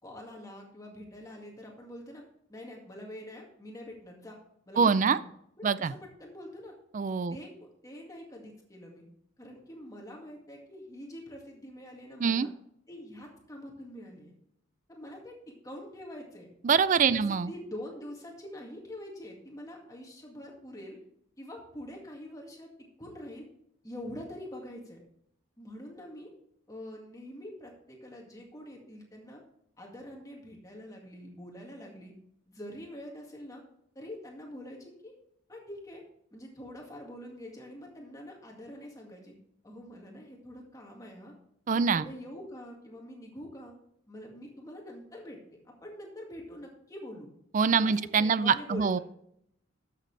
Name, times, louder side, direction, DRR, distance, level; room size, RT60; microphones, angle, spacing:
voice 1, 0.0-2.2 2.5-4.4 4.7-5.3 5.6-6.8 7.3-9.0 9.4-12.5 12.9-14.3 14.9-16.5 17.1-21.0 21.4-23.5 23.8-25.0 25.6-26.3 26.7-29.4 29.8-32.1 32.5-33.6 34.0-35.1 35.5-36.0 36.3-39.3 39.6-41.3 41.7-43.7 44.1-47.3 47.7-48.0 48.2-49.0, left 1 dB, 15° left, 0 dB, 1.9 m, -45 dB
voice 2, 4.8-5.2 5.6-5.9 6.9-7.4 12.2-12.5 16.6-17.5 41.7-42.1 47.5-49.0, right 6 dB, 40° right, 15 dB, 0.3 m, -24 dB
12.5 x 6.7 x 3.3 m, 0.72 s
head